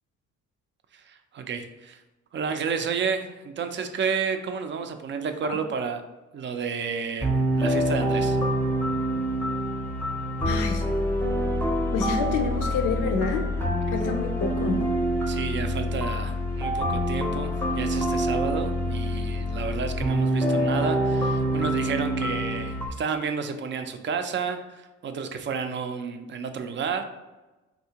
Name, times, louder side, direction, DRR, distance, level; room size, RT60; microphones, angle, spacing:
voice 1, 0.9-2.0 2.3-6.0 6.3-8.4 15.3-27.0, right 6 dB, 40° right, 7 dB, 0.4 m, -31 dB
sound 1, 7.2-22.9, equal, 5° left, 0.6 m, -26 dB
voice 2, 10.4-10.8 11.9-13.4 13.9-14.8, left 4 dB, 80° left, 4 dB, 0.5 m, -27 dB
3.5 x 2.7 x 2.8 m, 1.1 s
cardioid pair, 90°, 30 cm